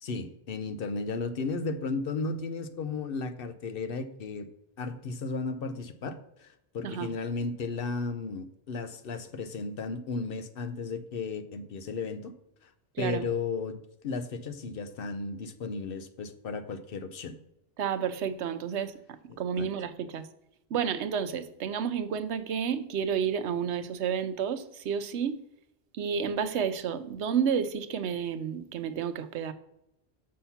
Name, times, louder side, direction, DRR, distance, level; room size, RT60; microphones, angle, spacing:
voice 1, 0.0-4.5 4.8-12.3 12.6-12.7 13.0-17.4 19.3-19.7, left 4 dB, 60° left, 10 dB, 0.8 m, -34 dB
voice 2, 17.8-20.3 20.7-25.4 25.9-29.5, right 7 dB, 90° right, 12 dB, 1.0 m, -31 dB
6.4 x 5.7 x 5.6 m, 0.81 s
omnidirectional pair, 1.1 m